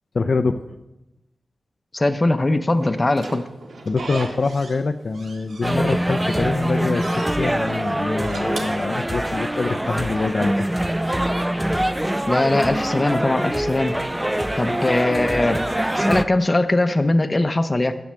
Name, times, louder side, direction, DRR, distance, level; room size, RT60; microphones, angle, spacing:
voice 1, 0.1-0.6 3.9-7.1 7.4-10.5, left 4 dB, 50° left, 8 dB, 0.5 m, -24 dB
voice 2, 1.9-3.4 12.3-14.0 14.6-15.6 16.0-17.9, left 2 dB, 25° left, 10 dB, 0.8 m, -20 dB
Slam / Squeak, 2.8-4.8 5.1-6.1 6.5-7.4 8.1-9.6, right 3 dB, 85° right, 1.7 m, -36 dB
sound 1, 5.6-16.2, right 1 dB, 10° right, 0.5 m, -24 dB
10.5 x 7.9 x 7.5 m, 0.98 s
wide cardioid pair, 105°, 0 cm